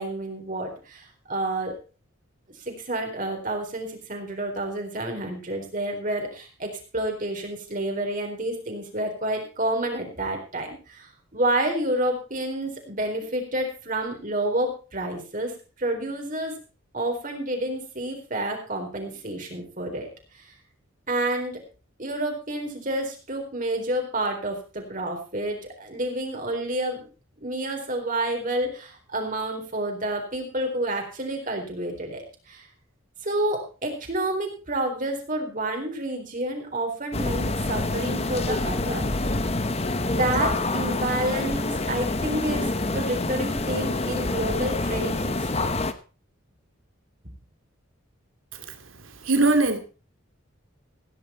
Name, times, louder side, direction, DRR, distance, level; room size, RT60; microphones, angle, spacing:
voice 1, 0.0-1.8 2.7-16.5 16.9-20.1 20.3-20.5 21.1-21.6 22.0-27.1 27.4-32.7 33.2-39.0 40.1-45.7, right 1 dB, 40° right, 3 dB, 4.0 m, -29 dB
sound 1, 37.1-45.9, left 2 dB, 30° left, 1.1 m, -27 dB
voice 2, 49.2-49.8, right 2 dB, 75° right, 8 dB, 2.5 m, -20 dB
16.5 x 10.5 x 4.4 m, 0.34 s
head